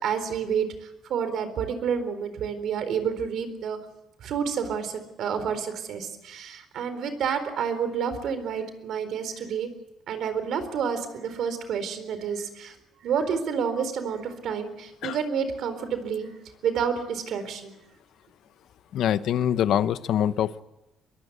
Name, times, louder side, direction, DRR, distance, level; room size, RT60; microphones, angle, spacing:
voice 1, 0.0-3.8 4.2-9.7 10.1-12.7 13.0-16.3 16.6-17.7, right 7 dB, 65° right, 10 dB, 4.1 m, -29 dB
voice 2, 18.9-20.6, left 10 dB, 70° left, 13 dB, 0.9 m, -24 dB
23.5 x 22.5 x 8.2 m, 0.94 s
cardioid pair, 150°, 0 cm